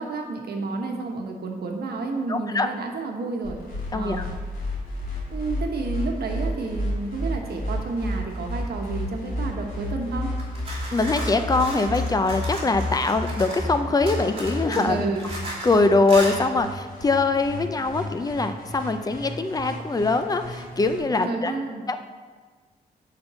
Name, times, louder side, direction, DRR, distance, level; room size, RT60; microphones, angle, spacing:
voice 1, 0.0-3.6 3.9-4.3 5.3-10.3 14.7-15.3 21.2-21.8, right 3 dB, 70° right, 2 dB, 1.2 m, -30 dB
voice 2, 2.3-2.7 3.9-4.2 10.9-15.0 15.6-21.5 21.9-22.0, left 3 dB, 20° left, 8 dB, 0.4 m, -23 dB
sound 1, 3.4-21.0, left 1 dB, 60° left, 2.9 m, -32 dB
sound 2, 10.4-13.7 14.1-15.8 16.1-16.4, right 1 dB, 35° right, 2.5 m, -35 dB
7.0 x 5.3 x 6.8 m, 1.5 s
wide cardioid pair, 160°, 17 cm